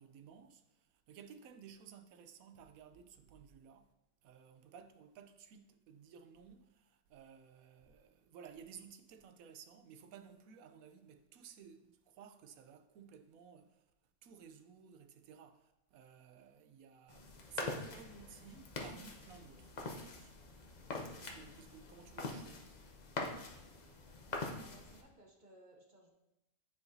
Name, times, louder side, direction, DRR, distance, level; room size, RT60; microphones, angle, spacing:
voice 1, 0.0-3.9 4.2-13.8 14.2-20.3 21.2-22.7, right 7 dB, 75° right, 1.0 m, -56 dB
sound 1, 17.1-25.0, left 3 dB, 40° left, 0.6 m, -44 dB
voice 2, 24.3-26.1, right 1 dB, 40° right, 0.8 m, -61 dB
9.5 x 4.8 x 2.7 m
omnidirectional pair, 1.5 m